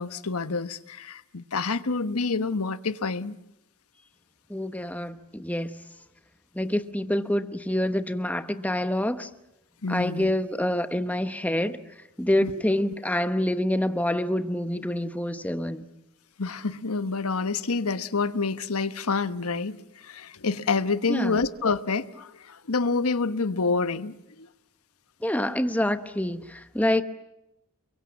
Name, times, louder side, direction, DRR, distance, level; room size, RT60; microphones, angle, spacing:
voice 1, 0.0-3.4 9.8-10.3 12.4-12.5 16.4-24.5, left 4 dB, 90° left, 1.2 m, -28 dB
voice 2, 4.5-5.7 6.5-9.3 9.9-11.8 12.2-15.9 21.1-21.4 25.2-27.0, left 1 dB, 5° left, 1.0 m, -26 dB
30.0 x 23.0 x 7.3 m
head